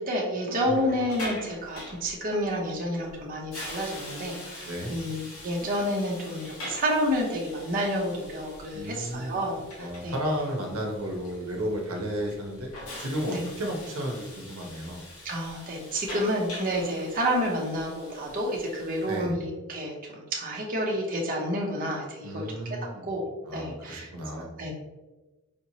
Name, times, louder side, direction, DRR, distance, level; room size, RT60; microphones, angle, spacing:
voice 1, 0.0-10.2 13.3-13.4 15.2-22.8 23.0-23.3 23.5-24.1 24.6-24.7, equal, 40° right, -2 dB, 0.7 m, -29 dB
Hiss, 0.6-19.2, left 1 dB, 80° left, 1.2 m, -44 dB
voice 2, 8.7-9.4 9.8-12.7 13.0-15.0 19.1-19.3 22.2-23.1 23.4-24.5, equal, 85° right, 1 dB, 0.9 m, -33 dB
5.0 x 2.9 x 2.8 m, 1.1 s
head